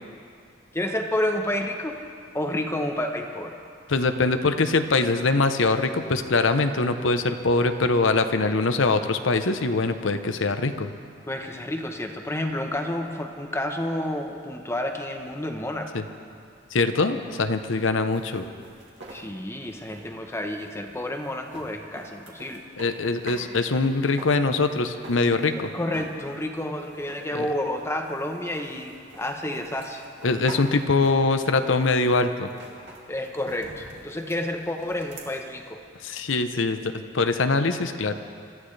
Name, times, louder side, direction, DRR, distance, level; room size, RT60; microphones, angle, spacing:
voice 1, 0.7-2.0 2.3-3.6 11.3-15.9 19.1-22.6 25.6-30.0 33.1-35.8, left 1 dB, 15° left, 3 dB, 0.9 m, -30 dB
voice 2, 3.9-10.9 15.9-16.0 16.7-18.5 22.8-25.7 27.3-27.5 30.2-32.5 36.0-36.8 37.1-38.1, left 3 dB, 75° left, 8 dB, 0.8 m, -23 dB
sound 1, 18.1-23.5 23.8-25.7 25.9-26.4 26.8-35.3, right 2 dB, 60° right, 2.3 m, -45 dB
26.0 x 14.0 x 3.3 m, 2.4 s
head